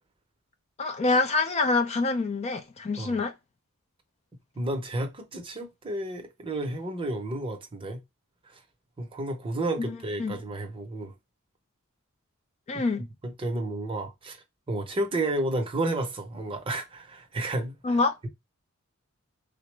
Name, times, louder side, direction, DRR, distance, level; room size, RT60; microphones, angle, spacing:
voice 1, 0.8-3.3 9.8-10.3 12.7-13.1 17.8-18.2, left 3 dB, 30° left, 0.3 m, -26 dB
voice 2, 4.5-8.0 8.5-8.6 9.0-11.1 12.7-12.8 13.2-14.4 14.7-18.3, right 1 dB, 25° right, 0.6 m, -31 dB
3.7 x 2.0 x 3.1 m
head